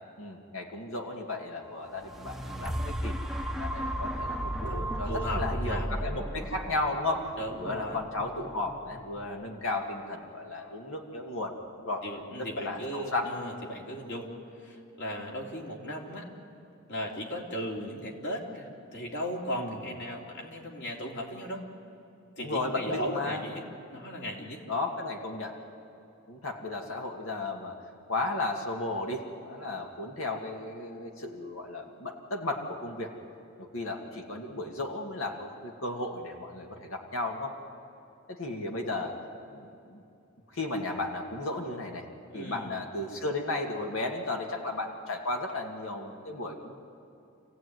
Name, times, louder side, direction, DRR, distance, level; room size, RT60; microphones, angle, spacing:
voice 1, 0.2-3.1 3.4-7.3 7.6-12.0 12.4-13.3 19.5-19.7 22.4-23.4 24.7-25.6 26.3-27.8 28.1-33.1 33.7-37.5 38.3-39.1 39.5-40.0 40.5-42.0 42.3-46.8, left 2 dB, 75° left, 1 dB, 2.2 m, -34 dB
sound 1, 1.9-9.9 10.5-10.6, equal, ahead, 0.9 m, -35 dB
voice 2, 4.6-6.1 7.4-8.0 12.0-14.3 14.6-16.3 16.9-21.6 22.4-23.6 23.9-24.6 42.3-42.7, equal, 60° left, 0 dB, 3.3 m, -37 dB
27.5 x 16.0 x 9.4 m, 2.7 s
head